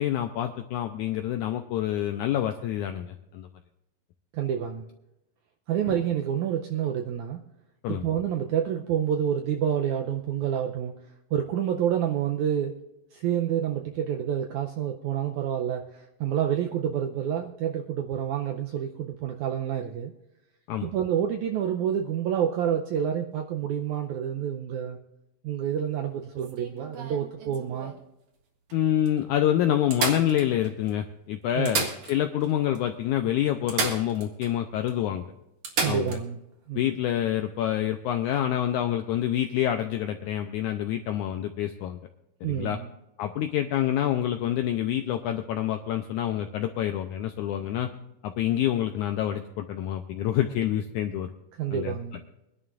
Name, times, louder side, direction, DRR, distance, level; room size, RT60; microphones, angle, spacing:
voice 1, 0.0-3.5 5.9-6.0 7.8-8.0 20.7-20.9 28.7-35.3 35.9-36.2 36.8-42.0 42.4-42.8 43.2-47.9 48.2-51.3 51.7-51.9, left 11 dB, 85° left, 7 dB, 1.7 m, -27 dB
voice 2, 4.3-4.9 5.7-7.4 7.9-10.9 11.3-12.8 13.1-20.1 20.8-25.0 25.4-27.9 31.6-31.9 35.8-36.4 36.7-36.9 42.4-42.9 51.6-52.2, right 9 dB, 85° right, 3 dB, 1.7 m, -28 dB
sound 1, 26.4-28.0 28.7-28.8 29.1-29.2 29.9-30.9 31.5-32.5 32.8-32.9 33.7-34.5 34.9-35.0 35.6-36.2 38.2-38.4, right 4 dB, 60° right, 3.0 m, -32 dB
24.0 x 11.0 x 2.5 m, 0.89 s
omnidirectional pair, 4.2 m